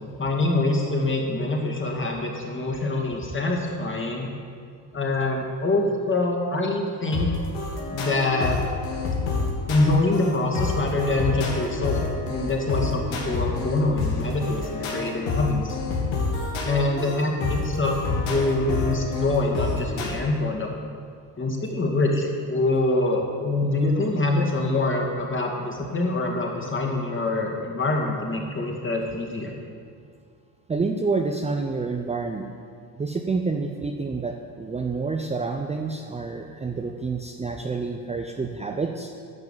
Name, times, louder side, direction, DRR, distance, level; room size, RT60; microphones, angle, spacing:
voice 1, 0.2-4.3 4.9-7.3 7.9-8.6 9.7-15.8 16.6-20.7 21.4-29.6, left 2 dB, 25° left, 0 dB, 2.2 m, -25 dB
sound 1, 7.1-20.1, left 3 dB, 80° left, 2.2 m, -28 dB
voice 2, 30.7-32.5 33.0-39.1, right 4 dB, 15° right, 3 dB, 0.6 m, -28 dB
11.0 x 6.0 x 7.4 m, 2.2 s
supercardioid pair, 80°, 45 cm